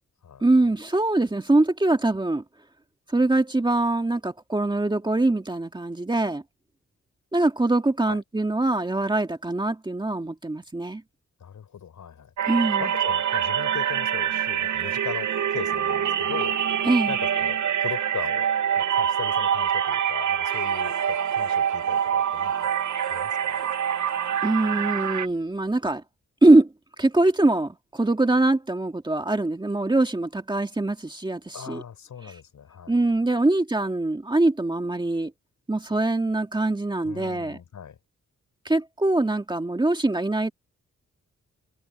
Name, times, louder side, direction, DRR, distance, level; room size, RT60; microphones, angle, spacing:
voice 1, 0.4-2.4 3.1-6.4 7.3-11.0 12.5-12.9 16.8-17.2 24.4-26.0 26.4-26.7 27.0-31.8 32.2-32.4 32.9-35.3 35.7-37.6 38.7-40.5, right 2 dB, 15° right, 2.0 m, -23 dB
voice 2, 11.4-12.3 12.8-22.7 23.1-23.6 31.5-32.9 33.4-33.5 37.0-38.0, left 8 dB, 85° left, 6.9 m, -39 dB
sound 1, 12.4-25.3, right 9 dB, 80° right, 1.1 m, -25 dB
wide cardioid pair, 120°, 29 cm